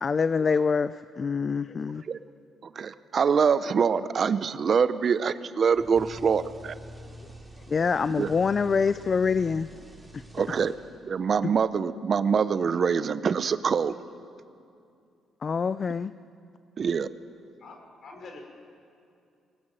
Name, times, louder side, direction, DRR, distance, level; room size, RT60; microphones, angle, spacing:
voice 1, 0.0-2.0 7.7-9.7 10.1-10.2 15.4-16.1, left 5 dB, 40° left, 14 dB, 0.5 m, -25 dB
voice 2, 2.8-6.7 8.2-8.3 10.3-10.8 11.0-13.9 16.8-17.1, right 6 dB, 50° right, 13 dB, 0.8 m, -24 dB
sound 1, 5.7-11.2, equal, 5° right, 3.5 m, -46 dB
voice 3, 17.6-18.4, left 3 dB, 55° left, 3 dB, 4.6 m, -45 dB
23.0 x 19.5 x 9.1 m, 2.5 s
cardioid pair, 90°, 0 cm